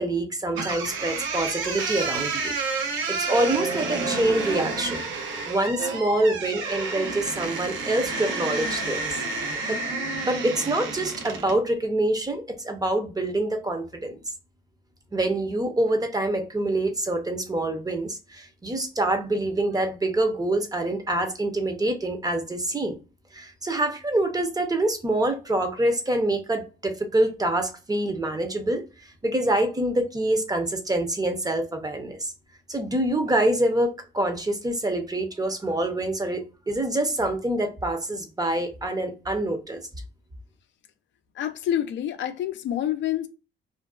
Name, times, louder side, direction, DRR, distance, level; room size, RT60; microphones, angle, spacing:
voice 1, 0.0-2.5 2.8-5.0 5.5-9.2 9.7-9.8 10.2-14.2 15.1-23.0 23.3-32.3 32.7-39.8, right 1 dB, 20° right, 0.6 m, -26 dB
sound 1, 0.5-11.6, right 3 dB, 75° right, 0.7 m, -30 dB
voice 2, 41.4-43.3, left 11 dB, 65° left, 0.4 m, -27 dB
2.5 x 2.2 x 2.3 m
cardioid pair, 90°, 20 cm